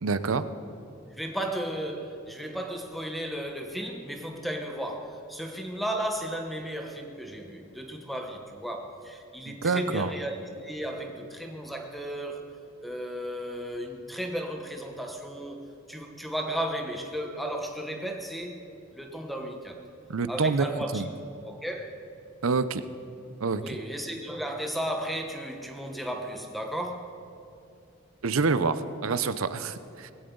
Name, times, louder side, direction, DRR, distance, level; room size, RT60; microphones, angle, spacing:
voice 1, 0.0-0.5 9.5-10.1 20.1-20.7 20.9-21.1 22.4-22.8 23.4-23.6 28.2-30.1, right 4 dB, 85° right, 13 dB, 0.7 m, -27 dB
voice 2, 1.1-12.6 12.8-15.6 15.9-18.6 18.9-19.8 20.3-21.1 21.4-22.0 23.6-27.1, right 1 dB, ahead, 3 dB, 1.2 m, -34 dB
19.5 x 16.0 x 3.9 m, 2.5 s
head